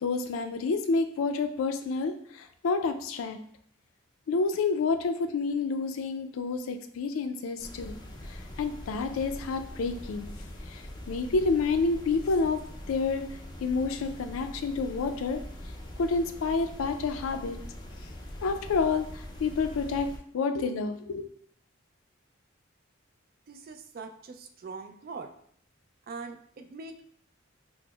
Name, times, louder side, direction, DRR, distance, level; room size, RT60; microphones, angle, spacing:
voice 1, 0.0-3.4 4.3-8.0 8.2-10.3 10.7-12.6 12.9-13.3 13.6-15.4 16.0-17.6 18.4-20.1 20.3-21.3, left 4 dB, 85° left, 7 dB, 0.4 m, -29 dB
sound 1, 7.6-20.2, left 1 dB, 20° left, 0.4 m, -43 dB
voice 2, 23.5-25.3 26.1-27.0, right 4 dB, 45° right, 5 dB, 0.3 m, -42 dB
5.8 x 2.0 x 2.2 m, 0.64 s
head